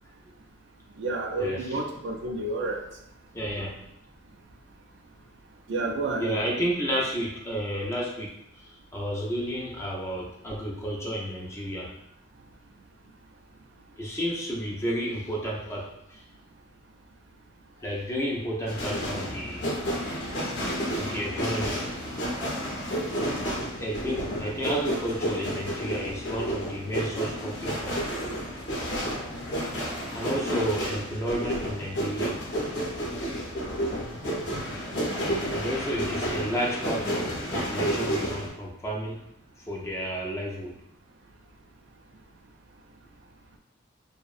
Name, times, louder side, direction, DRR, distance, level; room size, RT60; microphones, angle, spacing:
voice 1, 1.0-2.8 5.7-6.4, right 2 dB, 70° right, 1 dB, 0.4 m, -30 dB
voice 2, 3.3-3.8 6.2-11.9 14.0-16.2 17.8-19.8 20.9-21.8 23.8-28.0 29.4-29.5 30.1-32.4 35.5-39.2 39.7-40.7, equal, 15° left, -3 dB, 0.4 m, -31 dB
sound 1, 18.7-38.5, equal, 65° left, 0.6 m, -31 dB
2.6 x 2.0 x 2.3 m, 0.78 s
head